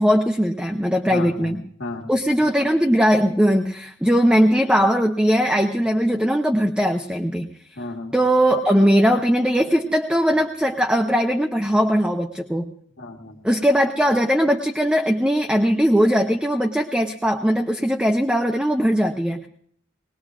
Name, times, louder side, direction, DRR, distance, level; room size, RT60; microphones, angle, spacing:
voice 1, 0.0-1.6 2.1-7.5 8.1-12.7 13.4-19.5, equal, 5° right, 4 dB, 0.6 m, -19 dB
voice 2, 1.0-2.1 7.8-8.1 13.0-13.4, left 2 dB, 70° left, -4 dB, 1.5 m, -34 dB
21.0 x 19.5 x 2.4 m, 0.65 s
head